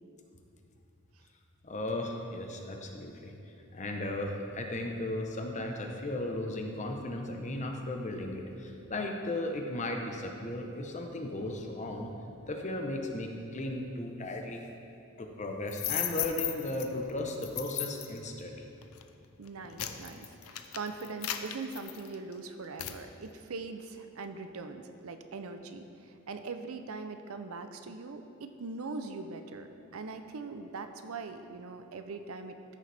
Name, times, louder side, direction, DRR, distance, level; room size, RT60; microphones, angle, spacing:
voice 1, 1.6-3.3 3.7-12.1 12.5-14.6 15.2-18.6, left 1 dB, 35° left, 3 dB, 0.9 m, -36 dB
sound 1, 15.7-16.9 17.4-18.2 18.8-19.0 19.5-22.3 22.8-23.0, left 12 dB, 85° left, 0.5 m, -35 dB
voice 2, 19.4-32.6, right 4 dB, 90° right, 8 dB, 0.6 m, -41 dB
13.5 x 6.5 x 3.4 m, 2.6 s
head